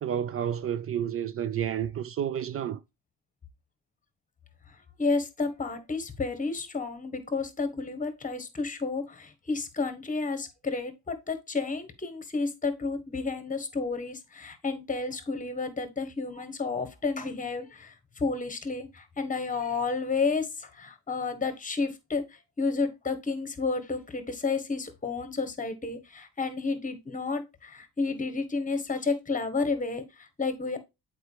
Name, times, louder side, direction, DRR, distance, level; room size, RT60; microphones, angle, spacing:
voice 1, 0.0-2.8, right 9 dB, 50° right, 0.4 m, -30 dB
voice 2, 5.0-30.8, left 4 dB, 25° left, 1.4 m, -31 dB
7.8 x 4.5 x 3.3 m
cardioid pair, 90°, 30 cm